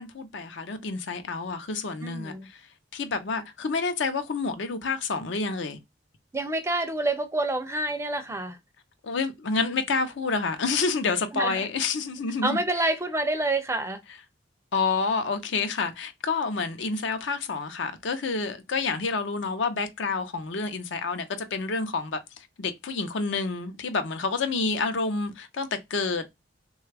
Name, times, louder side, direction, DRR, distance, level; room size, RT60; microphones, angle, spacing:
voice 1, 0.0-2.7 2.9-5.8 9.0-12.6 14.7-26.2, left 4 dB, 70° left, 0.6 m, -29 dB
voice 2, 2.0-2.5 6.3-8.6 11.3-11.6 12.4-14.0, right 2 dB, 15° right, 0.4 m, -27 dB
3.2 x 2.3 x 3.3 m
head